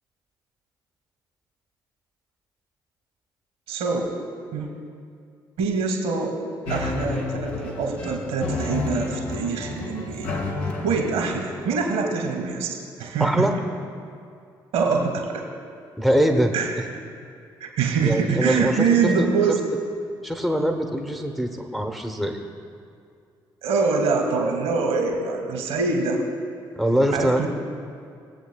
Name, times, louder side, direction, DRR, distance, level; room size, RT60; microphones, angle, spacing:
voice 1, 3.7-4.0 4.5-4.7 5.6-6.4 6.7-10.3 10.6-13.5 14.7-15.4 16.5-16.7 17.6-19.6 23.6-26.2 27.1-27.5, right 4 dB, 70° right, 3 dB, 1.7 m, -24 dB
sound 1, 6.7-11.7, left 3 dB, 65° left, 1.4 m, -30 dB
voice 2, 13.2-13.5 16.0-16.5 18.0-18.9 19.2-19.3 20.2-22.4 26.8-27.5, equal, ahead, 3 dB, 1.0 m, -23 dB
20.5 x 8.1 x 2.3 m, 2.4 s
figure-of-eight pair, 40°, 12 cm